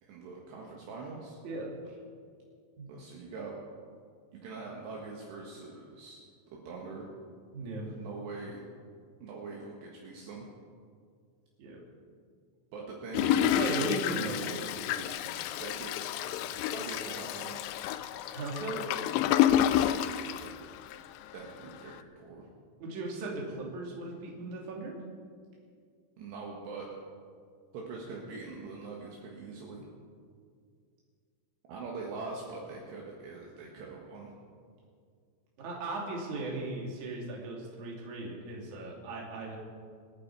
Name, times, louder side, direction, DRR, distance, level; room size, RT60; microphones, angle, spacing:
voice 1, 0.0-1.4 2.9-3.6 4.3-6.2 6.5-7.1 7.8-8.6 9.2-10.5 12.7-13.7 15.6-17.6 19.6-20.1 20.4-20.6 21.3-22.5 26.2-26.9 27.7-29.9 31.7-34.3, right 3 dB, 70° right, -2 dB, 3.4 m, -43 dB
voice 2, 1.4-2.0 2.8-2.9 7.5-7.9 11.6-11.8 13.5-15.3 18.3-19.1 22.8-25.0 35.6-39.6, right 2 dB, 45° right, -2 dB, 3.6 m, -37 dB
Toilet flush, 13.1-21.2 21.7-21.8 21.9-22.0, left 11 dB, 85° left, 2.4 m, -29 dB
27.5 x 9.9 x 4.7 m, 2.1 s
omnidirectional pair, 5.5 m